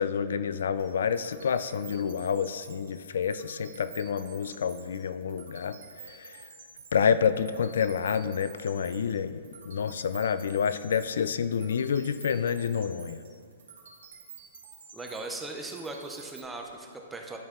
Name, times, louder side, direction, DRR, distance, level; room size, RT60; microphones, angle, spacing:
voice 1, 0.0-5.8 6.2-6.3 6.9-13.2, left 7 dB, 75° left, 14 dB, 0.3 m, -28 dB
sound 1, 0.8-16.4, right 6 dB, 70° right, 1.8 m, -50 dB
voice 2, 14.9-17.4, right 2 dB, 5° right, 2 dB, 0.5 m, -38 dB
11.5 x 4.5 x 3.6 m, 2.2 s
hypercardioid pair, 170°, 0 cm